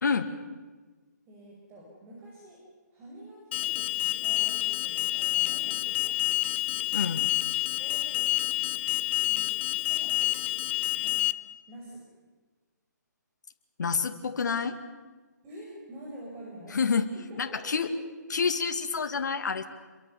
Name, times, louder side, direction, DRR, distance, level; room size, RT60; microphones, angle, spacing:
voice 1, 1.3-2.6 2.9-6.2 6.9-7.3 7.7-8.6 9.2-9.5 9.9-10.3 11.0-11.2 11.7-12.0 15.4-16.8 17.1-17.9, right 1 dB, 20° right, -3 dB, 6.1 m, -47 dB
Alarm, 3.5-11.3, left 15 dB, 35° left, 0.8 m, -28 dB
voice 2, 6.9-7.3 13.8-14.8 16.7-17.1 17.4-17.9 18.3-19.6, left 5 dB, 70° left, 5 dB, 2.2 m, -28 dB
27.5 x 23.0 x 7.0 m, 1.3 s
hypercardioid pair, 150°, 10 cm